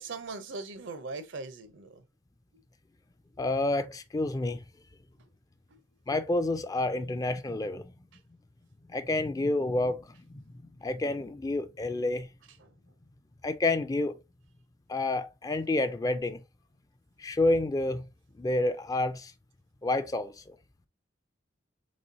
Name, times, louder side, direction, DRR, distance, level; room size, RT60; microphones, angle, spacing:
voice 1, 0.0-2.0 2.5-2.6 5.7-5.8 12.6-12.7, right 3 dB, 80° right, 0.6 m, -40 dB
voice 2, 3.4-4.6 6.1-7.9 8.9-10.4 10.8-12.3 13.4-14.2 14.9-16.4 17.2-18.0 18.4-19.3 19.8-20.6, left 2 dB, 20° left, 0.3 m, -29 dB
4.2 x 3.0 x 2.6 m
head